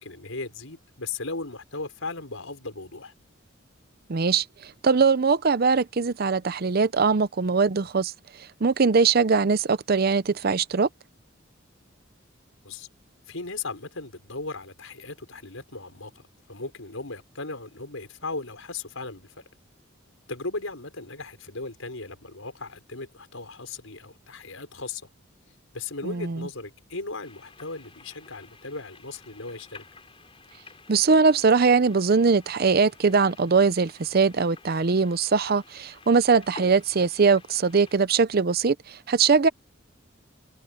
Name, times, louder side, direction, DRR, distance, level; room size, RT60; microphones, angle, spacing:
voice 1, 0.0-3.1 12.6-12.9 13.3-16.1 16.5-19.4 20.3-25.0 25.7-29.8, left 3 dB, 85° left, 5.7 m, -37 dB
voice 2, 4.1-8.1 8.6-10.9 26.0-26.5 30.9-39.5, right 5 dB, 50° right, 0.6 m, -21 dB
sound 1, 27.2-38.0, left 3 dB, 25° left, 4.8 m, -51 dB
head